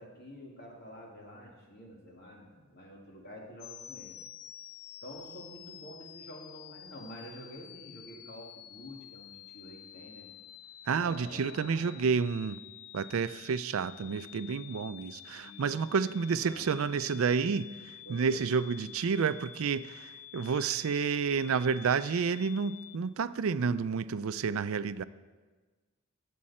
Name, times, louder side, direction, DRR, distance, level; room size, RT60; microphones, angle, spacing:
voice 1, 0.0-4.2 5.0-10.3 10.9-12.1 15.3-15.7 16.4-16.7 18.0-18.5, equal, 50° left, -1 dB, 2.6 m, -49 dB
sound 1, 3.6-23.0, left 12 dB, 90° left, 0.5 m, -50 dB
voice 2, 10.9-12.6 12.9-25.0, right 5 dB, 80° right, 15 dB, 0.4 m, -30 dB
21.0 x 7.5 x 4.3 m, 1.3 s
head